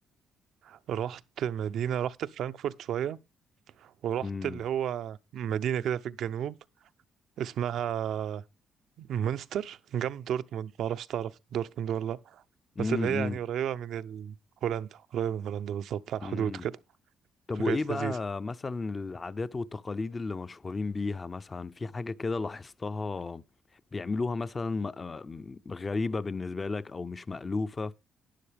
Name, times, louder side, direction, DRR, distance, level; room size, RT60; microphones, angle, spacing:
voice 1, 0.6-3.2 3.8-6.6 7.4-8.4 9.0-12.4 12.8-14.3 14.6-16.8 17.6-18.2, right 9 dB, 75° right, 0.5 m, -32 dB
voice 2, 4.2-4.6 12.8-13.4 16.2-16.7 17.5-23.4 23.9-27.9, left 3 dB, 30° left, 0.5 m, -33 dB
11.5 x 10.0 x 3.4 m
cardioid pair, 90°, 0 cm